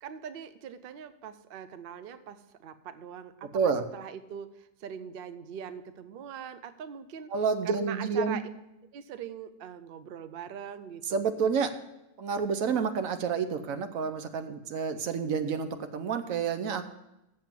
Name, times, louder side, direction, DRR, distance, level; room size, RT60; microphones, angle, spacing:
voice 1, 0.0-3.6 3.9-7.3 7.6-8.4 8.9-11.2, right 8 dB, 85° right, 12 dB, 0.5 m, -42 dB
voice 2, 3.5-3.8 7.3-8.4 11.1-11.7 12.2-16.9, right 5 dB, 65° right, 9 dB, 1.1 m, -29 dB
7.6 x 7.0 x 7.4 m, 0.92 s
omnidirectional pair, 1.7 m